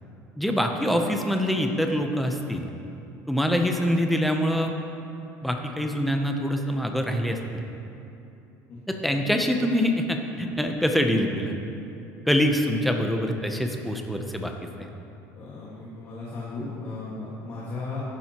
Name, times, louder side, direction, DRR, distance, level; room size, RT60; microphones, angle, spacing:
voice 1, 0.4-2.7 3.3-4.7 5.4-7.4 8.9-11.5 12.3-14.5 14.8-14.9, equal, ahead, 3 dB, 0.6 m, -25 dB
voice 2, 12.8-13.2 15.3-18.0, left 3 dB, 40° left, -6 dB, 1.7 m, -36 dB
13.5 x 11.0 x 2.9 m, 2.8 s
cardioid pair, 175°, 6 cm